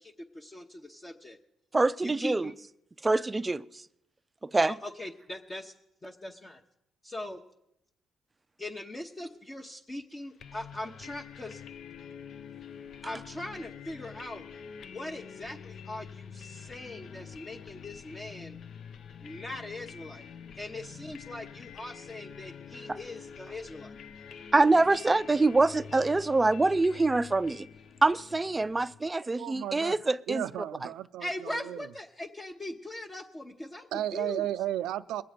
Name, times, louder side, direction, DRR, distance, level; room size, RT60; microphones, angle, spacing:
voice 1, 0.0-1.4 2.0-2.5 4.7-5.7 6.0-6.6 7.0-7.4 8.6-11.6 13.0-14.4 14.9-18.6 19.2-20.2 20.6-23.9 31.2-33.9 34.1-34.4, left 1 dB, 25° left, 0 dB, 0.9 m, -40 dB
voice 2, 1.7-2.5 3.0-3.6 4.5-4.8 22.9-23.0 24.5-27.7 28.0-30.4, right 3 dB, 20° right, 14 dB, 0.4 m, -25 dB
sound 1, 10.4-29.1, left 7 dB, 65° left, 0.6 m, -47 dB
voice 3, 29.4-30.0 30.3-31.9 33.9-35.2, right 13 dB, 90° right, 14 dB, 0.4 m, -34 dB
21.5 x 7.8 x 5.0 m, 0.80 s
cardioid pair, 90°, 0 cm